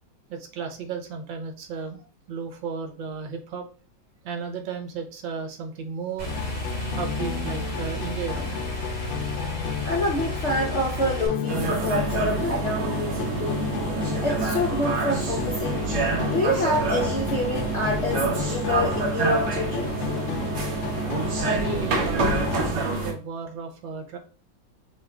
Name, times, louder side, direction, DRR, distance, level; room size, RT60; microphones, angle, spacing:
voice 1, 0.3-3.6 4.2-6.4 7.0-8.9 21.4-22.3 22.7-24.2, right 5 dB, 80° right, 5 dB, 1.6 m, -34 dB
sound 1, 6.2-11.3, left 1 dB, 45° right, 2.8 m, -32 dB
sound 2, 6.3-22.7, left 6 dB, 85° left, 1.4 m, -33 dB
voice 2, 9.8-13.6 14.2-15.8 16.3-19.9, left 1 dB, 60° left, 0 dB, 0.7 m, -27 dB
sound 3, 11.5-23.1, right 3 dB, 60° right, 1.5 m, -27 dB
6.1 x 2.5 x 3.4 m, 0.36 s
omnidirectional pair, 2.0 m